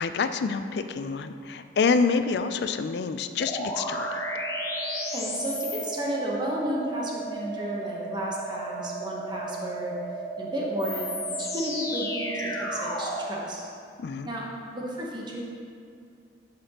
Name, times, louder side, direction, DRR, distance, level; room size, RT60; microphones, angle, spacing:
voice 1, 0.0-4.2 14.0-14.3, left 5 dB, 60° left, 10 dB, 0.3 m, -27 dB
sound 1, 3.4-13.3, right 1 dB, 15° left, 0.6 m, -33 dB
voice 2, 5.1-9.9 10.4-13.6 14.2-14.4 14.7-15.4, equal, 25° right, -3 dB, 1.0 m, -32 dB
11.0 x 5.1 x 2.9 m, 2.3 s
head